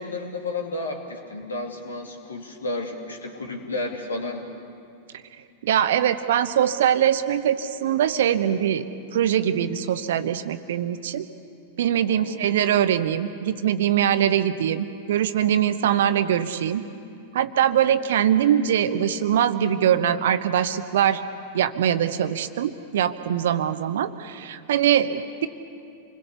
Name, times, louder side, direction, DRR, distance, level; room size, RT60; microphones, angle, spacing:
voice 1, 0.0-4.4 12.1-12.4, left 2 dB, 75° left, 3 dB, 2.6 m, -32 dB
voice 2, 5.6-8.8 9.1-11.3 11.8-16.8 17.3-21.2 21.5-25.5, right 10 dB, 60° right, 11 dB, 1.0 m, -22 dB
28.0 x 21.5 x 6.9 m, 2.5 s
figure-of-eight pair, 90°, 0 cm